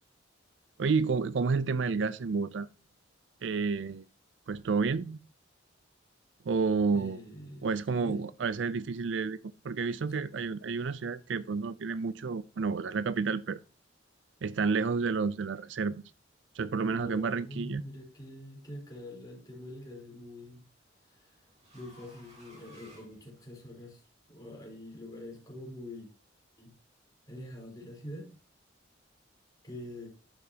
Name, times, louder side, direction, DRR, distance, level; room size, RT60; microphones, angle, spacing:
voice 1, 0.8-2.7 3.4-4.0 4.5-5.2 6.5-7.2 7.6-9.4 9.6-13.6 14.4-16.0 16.6-17.8, right 4 dB, 70° right, 0.4 m, -30 dB
voice 2, 6.9-8.2 10.1-10.2 16.9-20.7 21.1-21.3 21.7-26.1 26.6-26.7 27.3-28.3 29.6-30.1, left 1 dB, 20° left, 3.9 m, -45 dB
sound 1, 18.1-18.5 19.9-23.9, equal, 35° right, 3.8 m, -59 dB
10.5 x 6.8 x 2.8 m
head